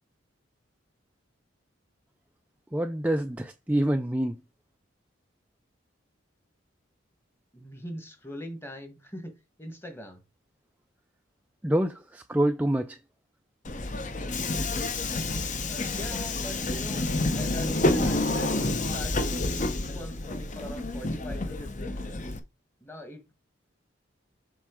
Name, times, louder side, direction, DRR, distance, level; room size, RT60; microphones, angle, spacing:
voice 1, 2.7-4.4 11.6-13.0, right 1 dB, 10° right, 0.4 m, -26 dB
voice 2, 7.5-9.3 9.6-10.2 15.2-17.1 17.3-22.4 22.8-23.3, equal, 10° left, 1.4 m, -42 dB
Subway metro underground, 13.6-22.4, left 2 dB, 40° left, 0.8 m, -29 dB
7.4 x 4.5 x 3.7 m
head